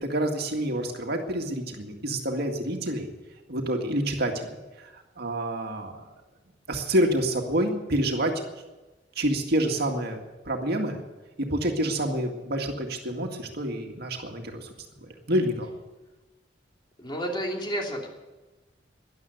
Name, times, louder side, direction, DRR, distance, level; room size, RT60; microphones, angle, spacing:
voice 1, 0.0-3.1 3.5-4.5 5.2-6.0 6.7-8.4 9.2-10.2 10.4-11.0 11.4-14.7 15.3-15.7, right 1 dB, 60° right, 3 dB, 2.0 m, -27 dB
voice 2, 17.0-18.1, equal, 25° left, 0 dB, 3.0 m, -30 dB
13.5 x 11.5 x 8.0 m, 1.1 s
head